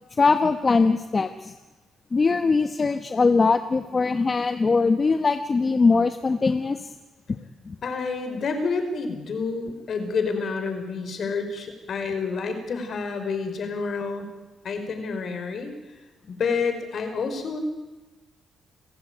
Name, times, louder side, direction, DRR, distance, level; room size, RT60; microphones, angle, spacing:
voice 1, 0.2-1.5 2.1-6.9 7.3-7.4 7.6-7.7, left 4 dB, 35° left, 9 dB, 1.2 m, -21 dB
voice 2, 7.8-14.3 14.6-15.7 16.3-17.6, left 4 dB, 55° left, 7 dB, 5.1 m, -29 dB
29.0 x 15.5 x 9.3 m, 1.1 s
cardioid pair, 95°, 0 cm